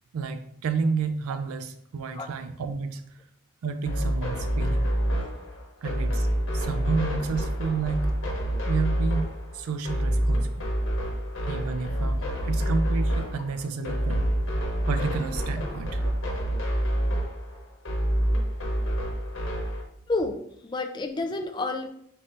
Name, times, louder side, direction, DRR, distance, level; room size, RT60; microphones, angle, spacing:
voice 1, 0.1-3.0 3.6-4.9 5.8-6.3 6.5-8.1 8.7-10.6 11.5-14.3 14.9-16.1, right 4 dB, 90° right, 8 dB, 0.4 m, -30 dB
sound 1, 3.8-19.8, equal, 65° left, 1.1 m, -27 dB
voice 2, 20.1-21.9, left 2 dB, 20° left, 5 dB, 0.3 m, -30 dB
5.3 x 2.6 x 3.2 m, 0.71 s
head